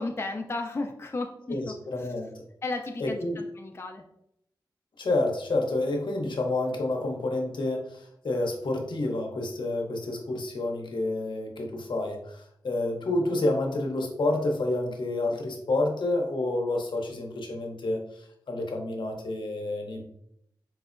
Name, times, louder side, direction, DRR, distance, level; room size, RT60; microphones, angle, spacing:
voice 1, 0.0-2.1 2.6-4.0, left 2 dB, 30° left, 3 dB, 0.4 m, -34 dB
voice 2, 1.5-2.3 3.0-3.4 5.0-20.0, left 2 dB, 70° left, 2 dB, 0.6 m, -29 dB
4.4 x 2.0 x 2.4 m, 0.76 s
cardioid pair, 40°, 8 cm